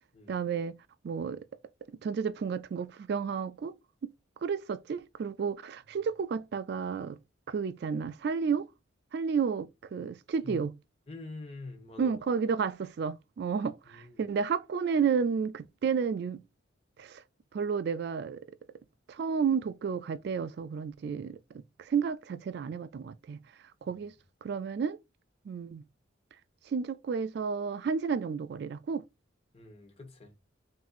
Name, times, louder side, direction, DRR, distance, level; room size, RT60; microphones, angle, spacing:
voice 1, 0.3-0.8 1.0-1.4 2.0-3.7 4.0-4.1 4.4-7.2 7.5-8.7 9.1-10.7 12.0-16.4 17.0-17.2 17.5-18.4 19.1-21.4 21.8-23.4 23.8-24.1 24.4-25.0 25.5-25.8 26.7-29.0, right 6 dB, 55° right, 0.3 m, -31 dB
voice 2, 11.1-12.2 13.8-14.3 23.8-24.0 29.5-30.3, left 2 dB, 30° left, 1.2 m, -46 dB
5.8 x 2.7 x 2.4 m
head